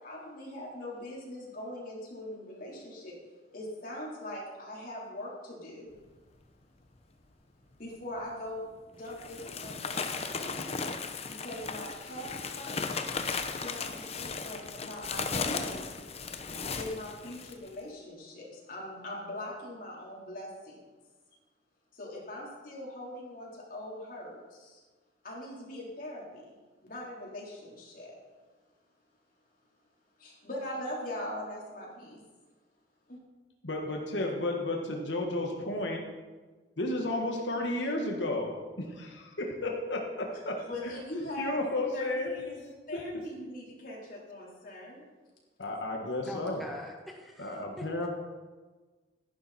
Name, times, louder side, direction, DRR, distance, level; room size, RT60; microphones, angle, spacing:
voice 1, 0.0-3.1 3.5-5.9 7.8-10.9 11.3-13.1 13.5-15.9 16.7-20.9 21.9-24.8 25.2-26.5 26.8-28.2 30.2-32.2 33.1-33.2 40.6-41.5 41.9-45.1, left 1 dB, 50° left, -4 dB, 4.1 m, -41 dB
sound 1, 8.3-8.4 9.0-17.7, left 4 dB, 35° left, 0.9 m, -36 dB
voice 2, 33.6-36.0 36.8-38.5 38.8-40.6 41.4-42.3 42.9-43.2 45.6-46.6 47.4-48.1, left 2 dB, 85° left, 1 dB, 1.7 m, -32 dB
voice 3, 46.2-48.1, left 1 dB, ahead, -1 dB, 1.5 m, -44 dB
13.5 x 11.0 x 4.4 m, 1.3 s
head